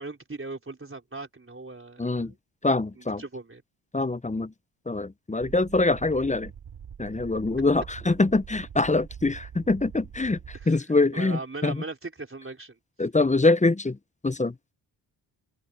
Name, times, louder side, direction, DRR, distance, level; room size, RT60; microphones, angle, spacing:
voice 1, 0.0-2.4 3.0-3.6 10.5-12.8, right 3 dB, 25° right, 4.6 m, -39 dB
voice 2, 2.0-2.3 2.6-3.2 3.9-4.5 4.9-6.5 7.0-10.4 10.7-11.8 13.0-14.0 14.2-14.5, left 3 dB, 15° left, 0.9 m, -24 dB
sound 1, 5.4-10.7, right 8 dB, 65° right, 4.3 m, -44 dB
open air
supercardioid pair, 45°, 50 cm